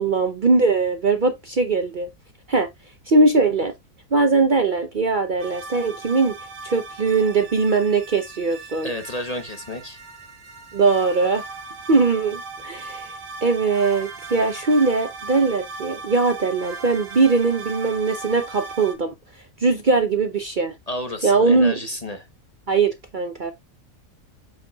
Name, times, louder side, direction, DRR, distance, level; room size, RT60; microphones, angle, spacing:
voice 1, 0.0-2.1 2.5-2.7 3.1-3.7 4.1-6.4 6.6-8.9 10.7-11.4 11.9-13.1 13.4-19.1 19.6-20.7 21.2-21.8 22.7-23.5, right 3 dB, 45° right, 0.8 m, -20 dB
sound 1, 5.4-18.9, right 3 dB, 70° right, 2.0 m, -38 dB
voice 2, 8.8-10.0 20.9-22.3, left 1 dB, 30° left, 0.9 m, -31 dB
7.3 x 5.8 x 2.3 m
omnidirectional pair, 1.4 m